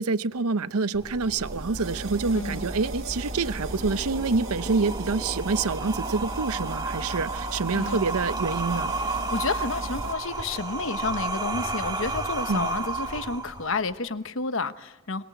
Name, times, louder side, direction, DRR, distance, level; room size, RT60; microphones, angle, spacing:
voice 1, 0.0-8.9 12.5-12.7, right 4 dB, 85° right, 0.8 m, -27 dB
sound 1, 0.9-13.9, right 3 dB, 20° right, 2.2 m, -33 dB
sound 2, 1.4-10.1, right 2 dB, 60° right, 1.5 m, -37 dB
voice 2, 2.3-2.7 7.7-8.0 9.3-15.2, left 4 dB, 60° left, 1.0 m, -30 dB
24.0 x 22.5 x 8.5 m
head